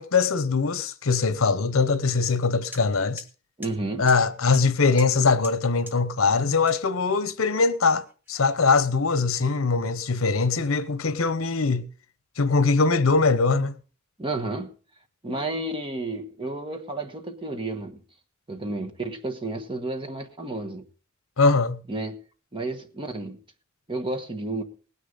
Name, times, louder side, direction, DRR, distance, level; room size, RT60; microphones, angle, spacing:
voice 1, 0.0-3.2 4.0-11.9 12.4-13.7 21.4-21.8, left 4 dB, 80° left, 0.9 m, -22 dB
sound 1, 2.3-2.4 2.7-2.8 3.2-3.3 3.6-3.7 4.1-4.2 4.5-4.6 5.0-5.1 5.4-5.5 5.9-6.0 6.7-6.8 7.3-8.3, equal, 10° right, 1.5 m, -42 dB
voice 2, 3.6-4.1 14.2-14.7 15.2-18.0 18.5-20.9 21.9-22.2 22.5-23.4 23.9-24.6, right 2 dB, 25° right, 1.4 m, -31 dB
18.5 x 9.7 x 4.0 m
head